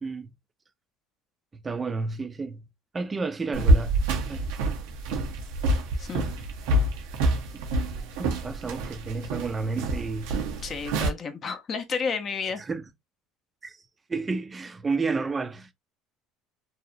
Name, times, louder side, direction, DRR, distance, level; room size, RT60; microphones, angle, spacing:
voice 1, 1.5-2.6 2.9-4.0 4.3-4.5 7.5-7.6 8.2-10.3 12.6-12.8 13.6-13.8 14.1-15.7, right 4 dB, 25° right, 0.4 m, -31 dB
sound 1, 3.5-11.1, right 1 dB, 80° right, 0.6 m, -26 dB
voice 2, 6.0-6.3 10.6-12.6, left 5 dB, 40° left, 0.6 m, -31 dB
2.7 x 2.0 x 2.5 m
supercardioid pair, 85°, 0 cm